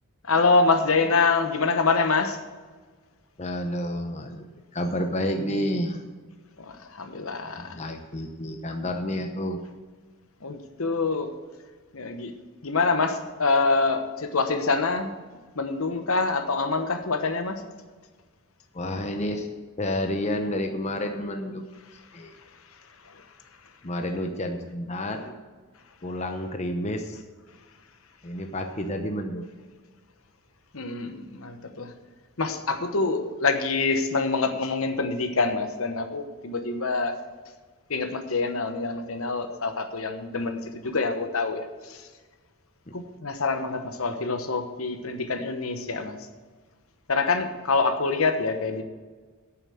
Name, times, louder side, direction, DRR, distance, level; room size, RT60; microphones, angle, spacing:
voice 1, 0.2-2.4 6.6-7.8 10.4-11.3 11.9-12.3 12.6-15.1 15.6-17.6 23.0-23.2 30.7-31.9 32.4-37.2 37.9-42.1 42.9-46.2 47.1-48.8, left 4 dB, 70° left, 7 dB, 1.1 m, -26 dB
voice 2, 3.4-4.5 4.7-6.0 7.6-9.7 18.7-21.6 22.1-22.3 23.8-25.3 26.0-27.2 28.2-29.4 42.9-43.0, left 1 dB, 30° left, 5 dB, 0.8 m, -30 dB
9.1 x 7.3 x 7.8 m, 1.4 s
head